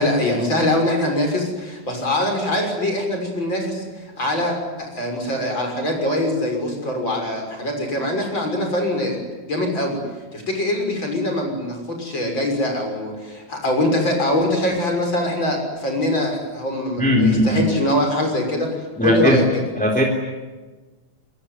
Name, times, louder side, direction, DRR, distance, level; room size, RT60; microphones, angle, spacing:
voice 1, 0.0-9.2 9.4-10.0 10.3-19.6, left 1 dB, 40° left, 2 dB, 7.0 m, -23 dB
voice 2, 17.0-17.6 19.0-19.4 19.7-20.0, equal, 5° left, 1 dB, 3.3 m, -17 dB
26.5 x 22.0 x 9.7 m, 1.2 s
omnidirectional pair, 3.4 m